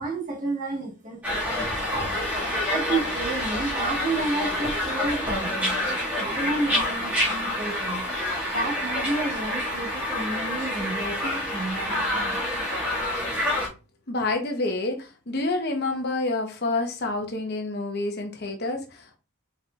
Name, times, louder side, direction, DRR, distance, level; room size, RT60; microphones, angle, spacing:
voice 1, 0.0-2.2 2.7-8.0 8.5-12.4, right 2 dB, 40° right, 1.5 m, -31 dB
sound 1, 1.2-13.7, left 1 dB, 10° right, 1.8 m, -27 dB
voice 2, 14.1-19.2, left 2 dB, 50° left, 0.9 m, -28 dB
4.6 x 4.3 x 2.4 m
head